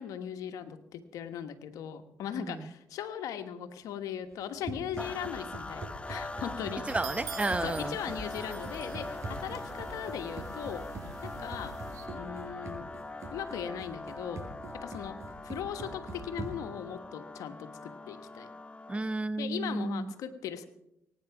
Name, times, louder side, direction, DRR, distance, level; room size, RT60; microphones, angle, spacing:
voice 1, 0.0-6.8 7.6-10.9 11.2-11.7 12.1-12.9 13.3-14.5 14.7-18.5 19.4-20.7, left 9 dB, 85° left, 8 dB, 1.3 m, -39 dB
voice 2, 2.4-2.7 6.9-8.0 18.9-20.1, right 2 dB, 20° right, 15 dB, 0.8 m, -32 dB
Run, 4.3-16.8, right 2 dB, 55° right, 6.2 m, -44 dB
sound 1, 5.0-19.2, left 2 dB, 20° left, 0.8 m, -42 dB
sound 2, 6.9-12.1, right 7 dB, 80° right, 2.9 m, -47 dB
23.0 x 9.7 x 5.9 m, 0.83 s
cardioid pair, 65°, 6 cm